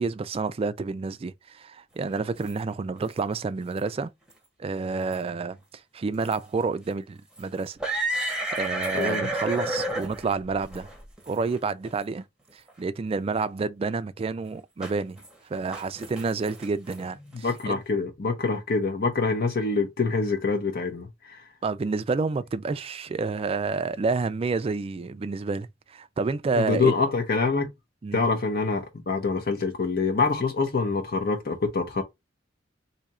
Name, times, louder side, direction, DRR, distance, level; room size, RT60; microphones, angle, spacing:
voice 1, 0.0-4.1 4.6-5.6 5.9-7.8 8.5-10.9 11.3-12.2 12.8-15.2 15.4-17.8 21.6-27.0 28.0-28.2, right 4 dB, 30° right, 0.3 m, -29 dB
sound 1, 2.1-2.5 3.0-3.2 3.8-3.9 4.3-4.4 4.9-5.3 6.2-6.4 6.9-7.0 7.4-11.6 11.8-11.9 12.7-12.8 14.8-15.3 15.5-17.6, right 1 dB, 5° right, 0.9 m, -32 dB
voice 2, 8.9-9.3 17.3-21.4 26.6-27.7 28.1-32.0, left 4 dB, 55° left, 0.7 m, -25 dB
2.8 x 2.4 x 4.1 m
head